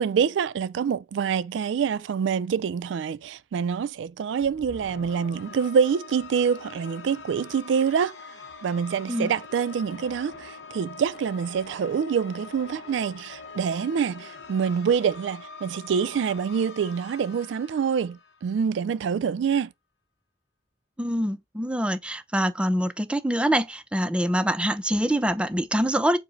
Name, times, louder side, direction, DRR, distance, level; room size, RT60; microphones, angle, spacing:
voice 1, 0.0-8.2 8.6-19.7, right 7 dB, 85° right, 0.3 m, -26 dB
sound 1, 4.4-18.8, left 4 dB, 70° left, 0.7 m, -44 dB
voice 2, 21.0-26.2, equal, 5° right, 0.3 m, -25 dB
4.7 x 2.0 x 4.4 m
head